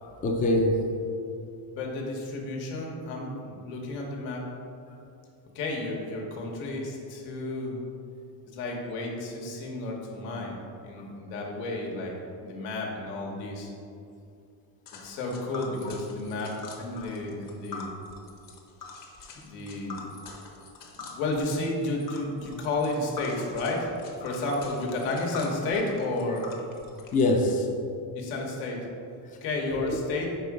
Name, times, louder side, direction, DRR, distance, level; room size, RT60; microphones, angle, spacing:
voice 1, 0.0-1.1 4.9-5.0 11.0-11.1 17.0-17.1 19.6-19.7 24.2-24.4 27.1-27.7 29.2-29.4 29.7-29.9, left 1 dB, 20° left, 1 dB, 0.4 m, -26 dB
voice 2, 1.8-4.5 5.5-7.8 8.5-12.1 12.4-13.7 15.0-17.9 19.4-20.0 20.9-23.9 24.2-26.5 28.1-28.8 29.4-30.3, left 2 dB, 85° left, -1 dB, 1.3 m, -32 dB
Tick, 14.9-27.5, left 4 dB, 45° left, 0.9 m, -45 dB
5.4 x 3.8 x 4.7 m, 2.5 s
cardioid pair, 130°, 48 cm